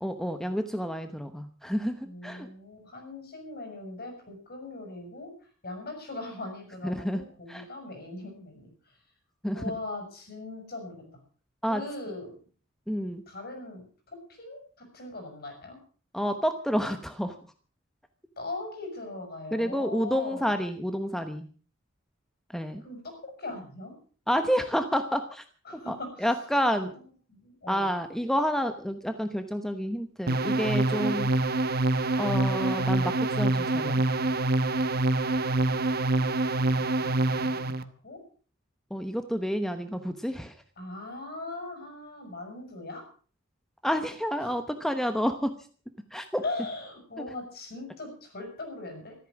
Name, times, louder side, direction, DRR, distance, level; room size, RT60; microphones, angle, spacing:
voice 1, 0.0-2.5 6.8-7.2 7.5-7.6 9.4-9.6 11.6-11.8 12.9-13.2 16.1-17.3 19.5-21.5 22.5-22.8 24.3-25.4 25.9-26.0 26.2-26.9 27.7-31.3 32.2-34.1 38.9-40.5 43.8-45.5 46.1-46.4, equal, ahead, 8 dB, 1.0 m, -29 dB
voice 2, 2.0-5.3 5.6-8.7 9.5-11.0 11.7-12.3 13.3-15.8 18.4-20.5 22.8-23.9 25.6-26.3 26.8-26.9 27.3-27.9 35.7-35.8 36.1-36.2 36.7-38.2 40.8-43.0 44.4-44.6 46.4-49.1, left 2 dB, 50° left, 5 dB, 6.5 m, -40 dB
sound 1, 30.3-37.8, right 2 dB, 50° right, 1.1 m, -26 dB
14.5 x 13.5 x 6.2 m, 0.42 s
head